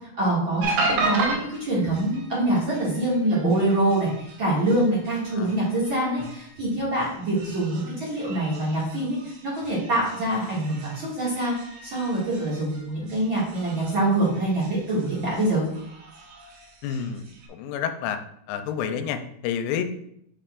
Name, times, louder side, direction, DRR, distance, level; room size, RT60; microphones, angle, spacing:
voice 1, 0.1-11.5 11.8-15.6, right 1 dB, 40° right, -8 dB, 2.1 m, -25 dB
sound 1, 0.6-17.5, right 3 dB, 70° right, 2.6 m, -35 dB
voice 2, 16.8-17.2 17.5-18.2 18.5-19.8, left 8 dB, 85° left, 8 dB, 2.7 m, -29 dB
6.8 x 5.6 x 2.4 m, 0.73 s
omnidirectional pair, 4.7 m